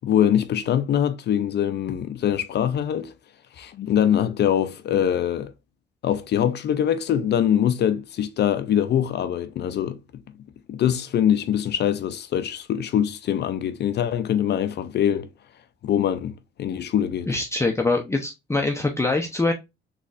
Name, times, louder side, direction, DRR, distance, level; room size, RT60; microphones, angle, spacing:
voice 1, 0.0-3.1 3.6-5.5 6.0-10.0 10.7-15.3 15.8-16.3 16.6-17.4, left 10 dB, 60° left, 0.4 m, -23 dB
voice 2, 17.3-19.5, left 3 dB, 15° left, 0.6 m, -23 dB
3.9 x 3.1 x 2.4 m
cardioid pair, 90°, 20 cm